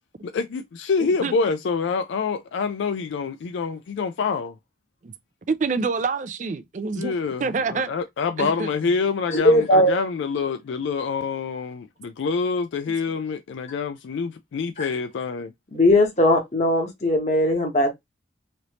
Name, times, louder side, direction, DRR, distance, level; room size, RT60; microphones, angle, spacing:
voice 1, 0.2-4.5 7.0-15.5, left 5 dB, 75° left, 0.3 m, -26 dB
voice 2, 1.0-1.3 5.0-5.1 5.5-7.1 7.4-7.9 8.4-8.7, right 4 dB, 40° right, 0.4 m, -26 dB
voice 3, 9.3-10.0 14.8-14.9 15.7-17.9, left 1 dB, 35° left, 1.1 m, -19 dB
3.3 x 2.6 x 2.9 m
head